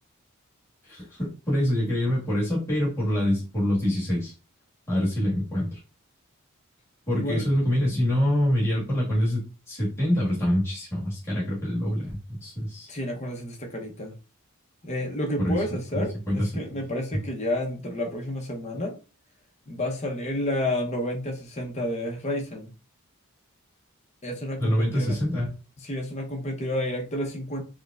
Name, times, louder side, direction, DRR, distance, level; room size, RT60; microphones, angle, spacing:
voice 1, 0.8-4.3 4.9-5.8 7.1-12.9 15.4-15.6 15.9-16.5 24.6-25.6, equal, 15° left, 1.5 m, -25 dB
voice 2, 7.1-7.4 12.9-14.1 14.8-19.0 19.7-22.7 24.2-25.2 25.8-27.6, left 1 dB, 30° left, 0.7 m, -30 dB
4.6 x 2.1 x 2.3 m
head